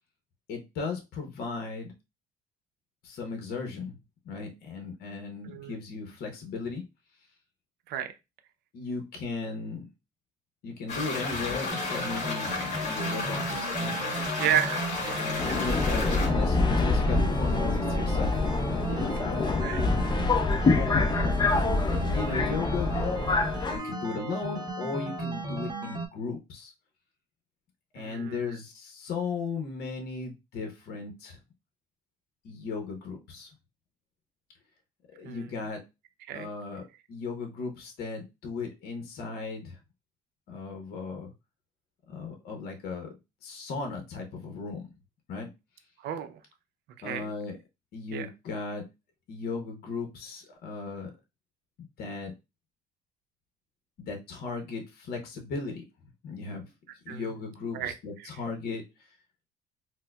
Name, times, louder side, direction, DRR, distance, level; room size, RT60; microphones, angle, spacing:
voice 1, 0.5-1.9 3.0-4.0 4.2-6.8 8.7-9.9 10.6-14.3 15.2-19.7 20.6-21.1 22.1-22.9 23.7-26.7 27.9-31.4 32.4-33.6 35.1-35.8 36.3-36.8 37.1-39.8 40.5-41.3 42.1-43.1 43.4-44.9 45.3-45.5 47.0-47.6 47.9-48.9 49.3-51.1 51.8-52.3 54.0-55.8 56.2-56.7 57.0-58.8, left 4 dB, 65° left, 4 dB, 0.8 m, -36 dB
sound 1, 10.9-16.3, left 3 dB, 45° left, 1.9 m, -33 dB
sound 2, 11.7-26.1, right 1 dB, 25° right, 0.7 m, -35 dB
voice 2, 14.4-15.5 19.6-19.8 21.2-21.4 28.0-28.5 35.2-35.4 36.3-36.5 46.0-46.4 47.0-47.3 48.1-48.3 57.1-57.2 57.7-57.9, right 10 dB, 75° right, 9 dB, 0.6 m, -32 dB
Subway metro underground, 15.4-23.8, left 3 dB, 25° left, 0.5 m, -26 dB
4.2 x 2.1 x 2.3 m, 0.25 s
cardioid pair, 110°, 17 cm